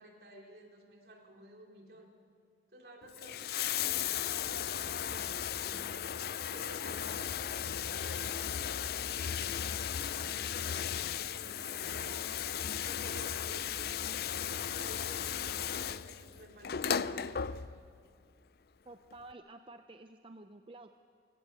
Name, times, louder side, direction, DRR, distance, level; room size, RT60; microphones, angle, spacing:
voice 1, 0.0-2.1 2.7-6.0 6.5-12.4 12.7-14.0 14.4-17.8, right 1 dB, 60° right, 1 dB, 3.3 m, -53 dB
Bathtub (filling or washing), 3.0-18.0 19.1-19.2, left 9 dB, 55° left, 0.5 m, -36 dB
voice 2, 18.9-20.9, right 2 dB, 30° right, 7 dB, 0.6 m, -51 dB
24.0 x 17.0 x 8.1 m, 2.2 s
head